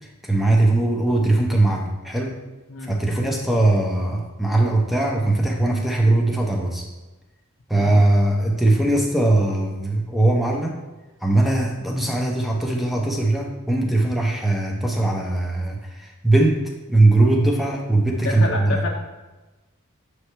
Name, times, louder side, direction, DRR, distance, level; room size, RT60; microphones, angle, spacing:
voice 1, 0.3-2.4 2.9-6.8 7.7-10.8 11.2-15.8 16.2-16.6 16.9-18.8, right 2 dB, ahead, 0 dB, 0.7 m, -20 dB
voice 2, 18.2-18.9, left 3 dB, 55° left, -1 dB, 0.6 m, -28 dB
6.9 x 3.2 x 4.6 m, 1.1 s
head